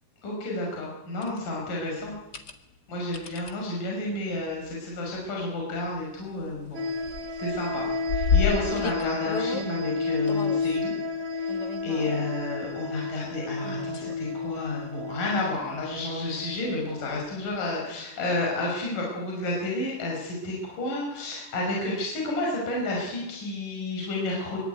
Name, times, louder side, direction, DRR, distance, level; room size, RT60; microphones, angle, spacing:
voice 1, 0.2-2.1 2.9-6.8 7.4-7.8 8.1-10.9 11.3-11.5 11.8-24.6, left 2 dB, 45° left, -2 dB, 6.8 m, -31 dB
sound 1, 1.2-1.4 2.1-2.5 3.1-3.5 4.7-5.0 5.4-5.5 5.8-6.7 7.0-9.7 10.3-10.8 11.5-12.4 13.6-14.2 14.7-14.8 17.1-17.2, left 6 dB, 75° left, 0.9 m, -30 dB
sound 2, 6.7-17.2, left 3 dB, 45° right, 3.2 m, -32 dB
25.5 x 24.5 x 9.4 m, 1.0 s
omnidirectional pair, 5.2 m